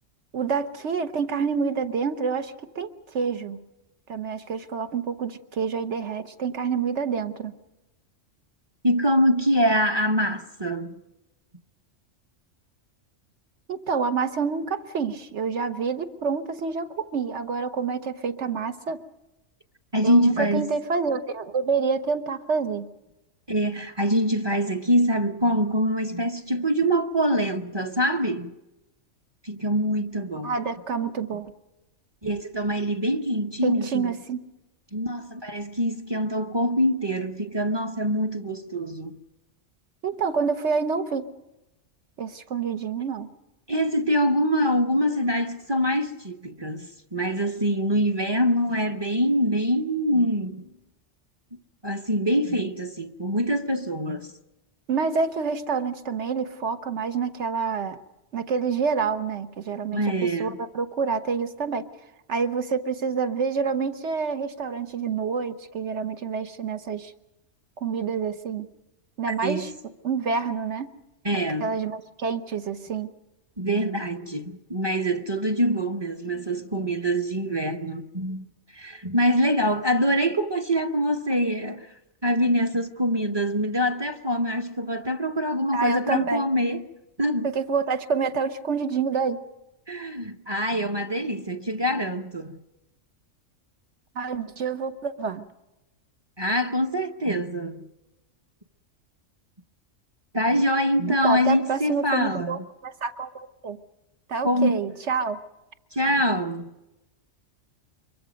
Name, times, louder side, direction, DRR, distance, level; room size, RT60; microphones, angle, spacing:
voice 1, 0.3-3.6 4.1-7.6 13.7-19.0 20.0-22.9 30.4-31.5 33.6-34.4 40.0-41.3 42.2-43.3 54.9-58.0 58.3-60.0 60.4-61.8 62.3-67.1 67.8-68.7 69.2-69.7 70.0-70.9 71.6-73.1 85.7-86.5 87.4-89.4 94.1-95.5 101.1-103.8 104.3-105.4, right 5 dB, 65° right, 1.5 m, -27 dB
voice 2, 8.8-10.9 19.9-20.7 23.5-28.5 29.4-30.6 32.2-34.1 34.9-39.2 43.7-50.7 51.8-54.3 59.9-60.6 69.3-69.7 71.2-71.8 73.6-78.5 78.7-81.9 82.2-86.8 87.2-87.5 89.9-92.6 96.4-97.9 100.3-102.6 104.4-104.8 105.9-106.7, equal, 25° right, 0.8 m, -24 dB
25.0 x 22.5 x 5.2 m
omnidirectional pair, 1.3 m